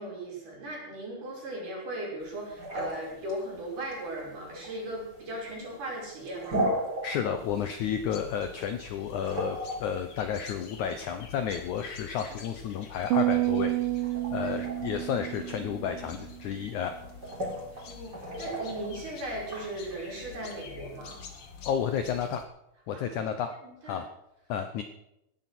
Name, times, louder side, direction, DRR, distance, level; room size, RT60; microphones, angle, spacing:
voice 1, 0.0-6.6 12.3-12.4 14.4-14.6 15.0-15.1 17.9-21.2 22.9-23.2 23.6-24.0, right 1 dB, 55° right, -4 dB, 7.4 m, -38 dB
sound 1, 2.2-20.6, equal, 25° right, 4.3 m, -38 dB
voice 2, 7.0-13.7 14.3-17.0 21.6-22.4 22.9-23.6 23.8-24.1 24.5-24.8, left 8 dB, 75° left, 8 dB, 1.8 m, -31 dB
sound 2, 7.4-22.4, left 6 dB, 50° left, 2.1 m, -48 dB
sound 3, 13.1-16.5, right 17 dB, 80° right, 2.1 m, -29 dB
17.5 x 11.0 x 6.1 m, 0.84 s
omnidirectional pair, 4.5 m